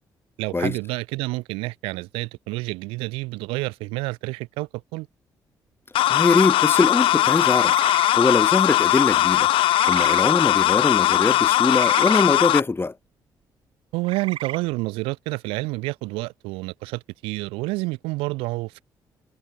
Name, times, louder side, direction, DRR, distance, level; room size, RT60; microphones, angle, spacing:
voice 1, 0.4-5.1 13.9-18.8, right 23 dB, 90° right, 3.7 m, -29 dB
sound 1, 6.0-12.6, left 14 dB, 75° left, 0.6 m, -19 dB
voice 2, 6.1-7.7 8.1-9.5 9.9-12.9, left 3 dB, 25° left, 1.1 m, -22 dB
sound 2, 7.4-8.1 9.7-10.2 11.7-12.2 14.0-14.6, right 11 dB, 70° right, 1.5 m, -33 dB
supercardioid pair, 50°, 9 cm